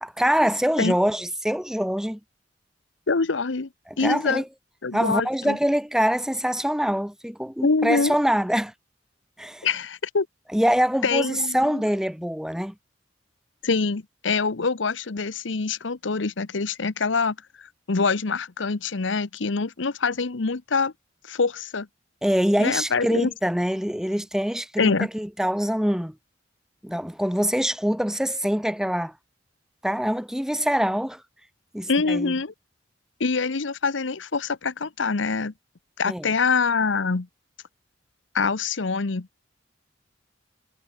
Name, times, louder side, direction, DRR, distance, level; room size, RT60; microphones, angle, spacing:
voice 1, 0.0-2.2 3.9-4.4 4.9-8.7 9.4-9.7 10.5-12.7 22.2-26.1 26.8-29.1 29.8-31.2 31.7-32.3 36.1-36.3, equal, 5° right, 1.2 m, -24 dB
voice 2, 3.1-3.7 4.0-4.4 4.8-5.6 7.6-8.2 9.6-10.3 11.0-11.7 13.6-20.9 21.3-21.9 22.6-23.3 24.8-25.1 31.9-32.5 33.2-35.5 36.0-37.3 38.3-39.3, left 4 dB, 85° left, 0.9 m, -25 dB
head